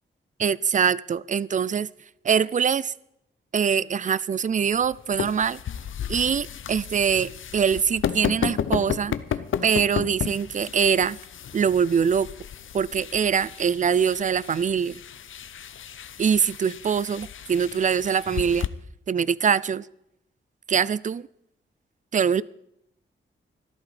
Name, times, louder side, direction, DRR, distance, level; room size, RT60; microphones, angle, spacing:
voice 1, 0.4-1.9 2.2-2.9 3.5-5.6 6.1-9.1 9.6-11.2 11.5-12.3 12.7-15.0 16.2-18.7 19.1-19.9 20.7-21.3 22.1-22.4, right 7 dB, 40° right, 0.4 m, -23 dB
sound 1, 4.7-18.7, left 8 dB, 70° left, 0.7 m, -33 dB
14.0 x 12.5 x 5.0 m
wide cardioid pair, 110°, 21 cm